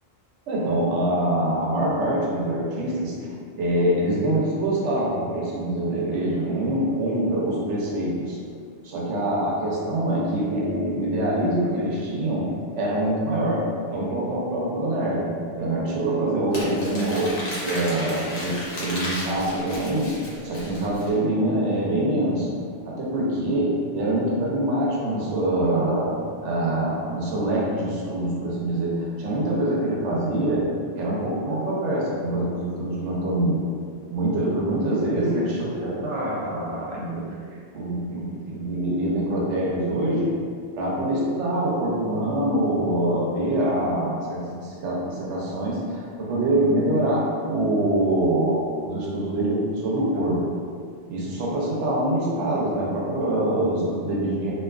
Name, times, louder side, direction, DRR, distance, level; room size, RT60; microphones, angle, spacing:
voice 1, 0.5-3.3 3.5-8.4 8.8-15.3 15.6-20.2 20.4-22.5 22.9-30.7 31.0-33.7 34.1-37.2 37.7-40.4 40.8-50.6 51.1-54.5, right 1 dB, 85° right, -4 dB, 0.9 m, -25 dB
Crumpling crinkling, 16.5-21.1, left 1 dB, 80° left, 1.0 m, -34 dB
2.6 x 2.3 x 2.3 m, 2.2 s
omnidirectional pair, 1.2 m